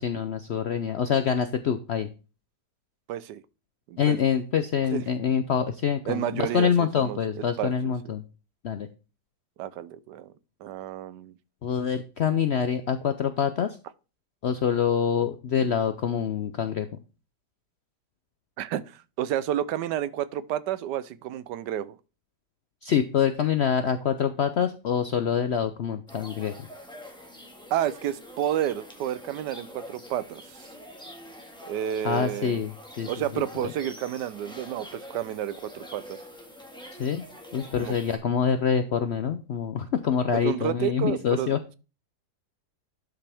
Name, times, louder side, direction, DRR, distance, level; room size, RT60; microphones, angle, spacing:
voice 1, 0.0-2.1 4.0-8.2 8.6-8.9 11.6-13.8 14.4-16.9 22.8-26.7 32.0-32.7 33.0-33.7 37.0-37.2 37.5-41.6, left 7 dB, 70° left, 0.6 m, -26 dB
voice 2, 3.1-3.4 3.9-4.2 4.9-5.0 6.1-7.9 9.6-10.3 10.6-11.4 18.6-22.0 27.7-30.7 31.7-32.6 33.1-36.2 37.8-37.9 40.4-41.8, right 11 dB, 85° right, 1.2 m, -30 dB
sound 1, 26.1-38.2, equal, 5° left, 1.5 m, -45 dB
11.5 x 5.7 x 3.5 m
omnidirectional pair, 1.8 m